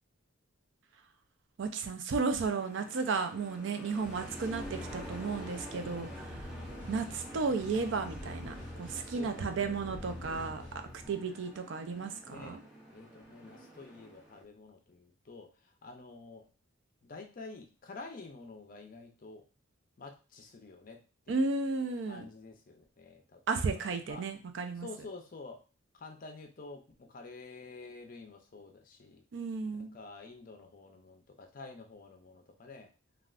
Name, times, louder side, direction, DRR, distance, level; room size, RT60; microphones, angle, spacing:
voice 1, 1.6-6.3 6.9-10.6 11.1-12.6 21.3-22.3 23.5-24.9 29.3-29.9, right 4 dB, 70° right, 7 dB, 0.4 m, -34 dB
sound 1, 2.4-14.4, right 1 dB, 5° right, 0.6 m, -48 dB
sound 2, 4.0-11.1, left 2 dB, 45° right, 1.0 m, -46 dB
voice 2, 5.8-6.2 8.9-9.6 10.2-11.3 12.3-12.6 12.9-16.5 17.0-19.4 20.0-21.0 21.3-21.4 22.1-24.2 24.8-25.6 25.9-29.2 29.8-32.9, left 3 dB, 45° left, 4 dB, 0.5 m, -49 dB
3.3 x 2.4 x 2.4 m, 0.35 s
head